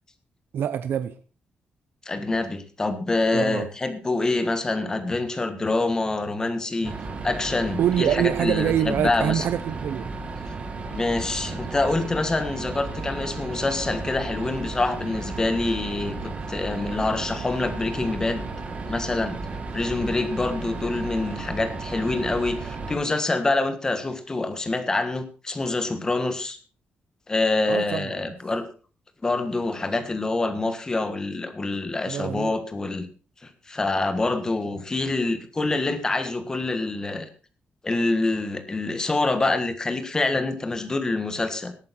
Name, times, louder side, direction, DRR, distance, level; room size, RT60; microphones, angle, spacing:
voice 1, 0.5-1.2 3.3-3.7 7.8-10.1 27.7-28.2 32.1-32.6, right 10 dB, 75° right, 12 dB, 0.7 m, -25 dB
voice 2, 2.0-6.9 7.2-9.4 10.9-18.4 18.9-19.4 19.7-26.6 27.3-28.6 29.2-33.0 33.4-37.3 37.8-41.7, left 2 dB, 20° left, 9 dB, 1.6 m, -26 dB
sound 1, 6.8-23.0, right 3 dB, 35° right, 2.1 m, -34 dB
18.0 x 8.9 x 4.3 m, 0.36 s
wide cardioid pair, 180°, 4 cm